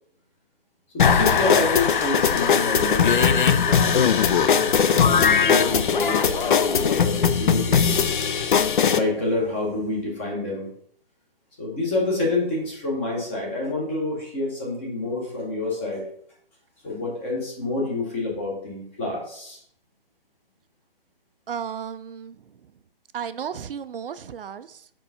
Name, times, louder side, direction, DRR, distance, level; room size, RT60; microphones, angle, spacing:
voice 1, 0.9-4.2 4.6-8.2 8.9-10.7 11.6-16.0 16.8-19.6, left 2 dB, 10° left, -2 dB, 0.7 m, -28 dB
sound 1, 1.0-9.0, left 7 dB, 55° left, 0.5 m, -19 dB
voice 2, 21.5-22.6 23.1-24.9, right 7 dB, 65° right, 12 dB, 0.4 m, -34 dB
4.5 x 4.4 x 5.4 m, 0.66 s
hypercardioid pair, 165°, 30 cm